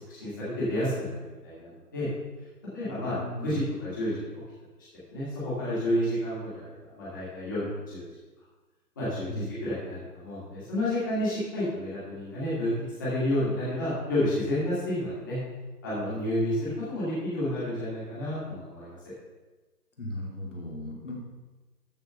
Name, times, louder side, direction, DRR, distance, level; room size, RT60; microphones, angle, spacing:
voice 1, 0.1-2.1 2.7-4.3 5.1-8.1 9.0-12.7 13.0-15.4 15.8-19.0, left 1 dB, 10° left, -10 dB, 2.3 m, -30 dB
voice 2, 2.8-3.6 9.3-9.5 20.0-21.2, left 1 dB, 45° left, -2 dB, 2.7 m, -37 dB
14.0 x 5.0 x 6.6 m, 1.2 s
hypercardioid pair, 175°, 49 cm